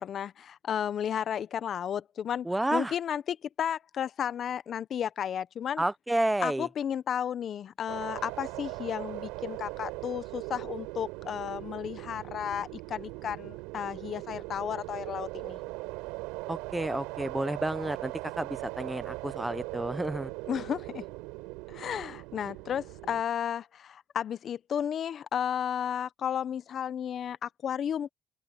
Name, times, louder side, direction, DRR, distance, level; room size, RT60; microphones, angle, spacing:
voice 1, 0.0-5.8 6.4-15.6 20.5-21.0 21.7-28.1, left 9 dB, 55° left, 0.9 m, -33 dB
voice 2, 2.4-2.9 5.8-6.7 16.5-20.3, right 1 dB, 10° right, 0.9 m, -30 dB
sound 1, 7.9-23.2, right 23 dB, 90° right, 4.0 m, -40 dB
open air
supercardioid pair, 80°, 0 cm